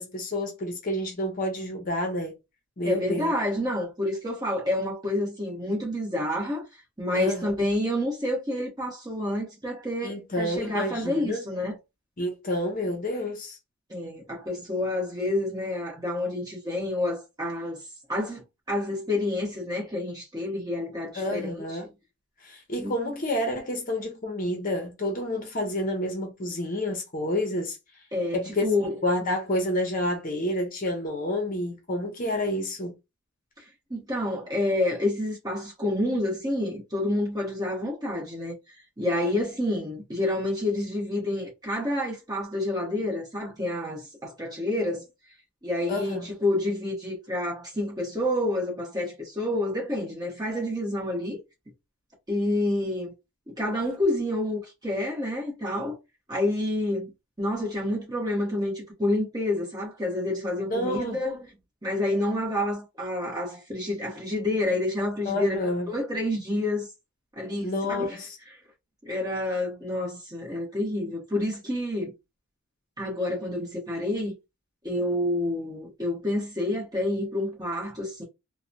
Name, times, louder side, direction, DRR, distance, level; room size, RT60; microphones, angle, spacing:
voice 1, 0.0-2.4 2.8-3.3 7.1-7.4 10.0-11.4 12.2-13.6 21.1-21.9 22.4-27.8 28.3-28.6 29.0-32.9 45.9-46.3 60.7-61.2 65.2-65.9 67.6-68.3, left 1 dB, 40° left, 0.6 m, -29 dB
voice 2, 2.8-6.6 7.0-11.8 13.9-17.8 18.1-21.6 22.8-22.9 28.1-29.0 33.9-38.5 39.0-45.0 45.6-51.4 52.3-53.1 53.6-56.0 56.3-57.1 57.4-61.4 61.8-66.9 67.4-68.2 69.0-72.1 73.0-74.3 74.8-78.2, left 1 dB, 15° right, 1.1 m, -28 dB
3.0 x 2.1 x 2.6 m
head